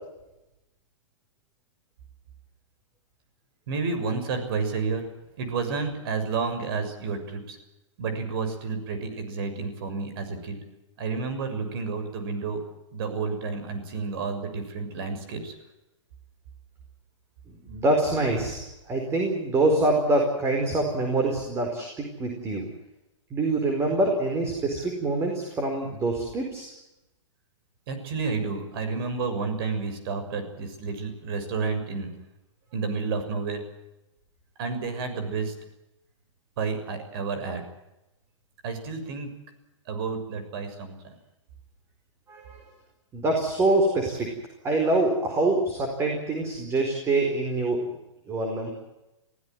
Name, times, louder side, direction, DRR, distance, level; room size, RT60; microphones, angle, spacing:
voice 1, 3.7-5.1 5.4-7.6 8.0-10.6 11.0-12.6 12.9-15.5 27.9-32.1 32.7-33.6 34.6-35.5 36.6-37.6 38.6-39.3 39.9-41.1, right 4 dB, 50° right, 8 dB, 6.7 m, -30 dB
voice 2, 17.5-18.6 18.9-22.7 23.3-26.7 42.3-42.6 43.1-44.3 44.6-47.8 48.3-48.7, right 2 dB, 15° right, 3 dB, 4.6 m, -25 dB
24.5 x 16.5 x 9.3 m, 0.95 s
hypercardioid pair, 150°, 16 cm